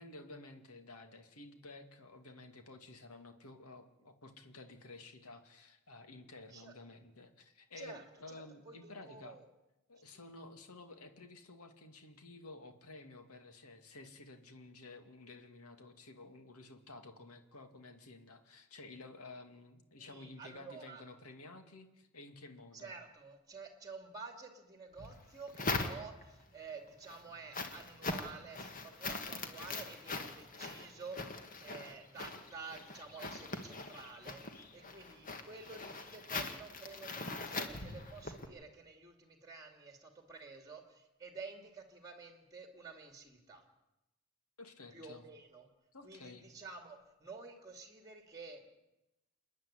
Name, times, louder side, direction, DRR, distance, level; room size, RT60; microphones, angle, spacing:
voice 1, 0.0-9.4 9.9-22.9 44.6-45.2 45.9-46.5, left 2 dB, 85° left, 6 dB, 2.3 m, -53 dB
voice 2, 7.8-9.5 10.1-10.2 19.9-21.0 22.7-43.7 44.9-45.7 46.0-48.7, right 4 dB, 15° right, 5 dB, 2.4 m, -51 dB
sound 1, 25.0-26.4 26.9-38.5, left 3 dB, 35° left, 1.8 m, -42 dB
28.5 x 10.0 x 10.0 m, 0.97 s
head